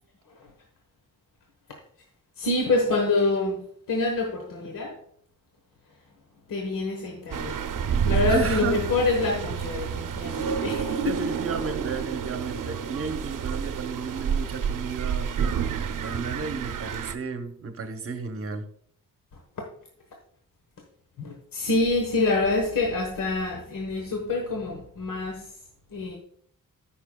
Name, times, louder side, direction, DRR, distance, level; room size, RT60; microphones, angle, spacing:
voice 1, 2.4-5.0 6.5-7.7 8.0-11.3 21.2-25.5 25.9-26.2, left 3 dB, 80° left, 1.3 m, -26 dB
sound 1, 7.3-17.2, right 7 dB, 75° right, 0.6 m, -29 dB
voice 2, 8.3-8.8 11.0-15.6 16.0-18.7, right 5 dB, 45° right, 0.8 m, -33 dB
13.5 x 5.7 x 2.2 m
wide cardioid pair, 160°, 32 cm